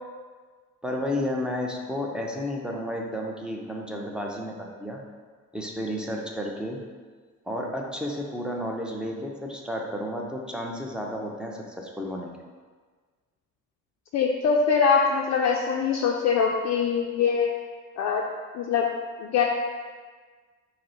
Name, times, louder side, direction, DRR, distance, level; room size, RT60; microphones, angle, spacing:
voice 1, 0.8-5.0 5.5-6.8 7.5-12.3, left 1 dB, 5° right, 0 dB, 0.6 m, -32 dB
voice 2, 14.1-17.5 18.0-18.2 18.5-18.9 19.2-19.4, left 6 dB, 55° left, 0 dB, 0.4 m, -23 dB
5.0 x 2.1 x 4.3 m, 1.5 s
cardioid pair, 85°, 33 cm